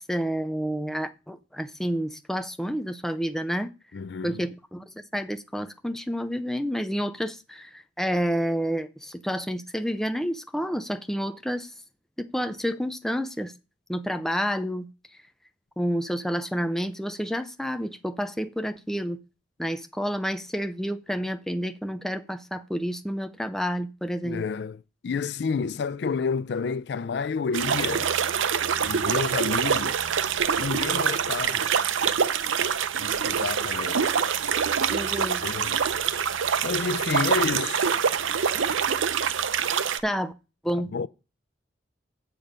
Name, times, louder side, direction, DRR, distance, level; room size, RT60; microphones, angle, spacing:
voice 1, 0.0-3.7 4.2-4.8 5.1-11.7 12.2-13.5 13.9-14.9 15.8-19.2 19.6-24.4 34.9-35.4 40.0-40.3 40.6-40.9, equal, ahead, 0.5 m, -29 dB
voice 2, 3.9-4.5 24.2-28.1 28.8-30.0 30.6-31.8 33.0-34.1 35.4-35.8 36.6-37.9 40.7-41.1, left 5 dB, 60° left, 0.4 m, -30 dB
sound 1, 27.5-40.0, right 7 dB, 80° right, 0.6 m, -25 dB
7.5 x 6.9 x 5.4 m
head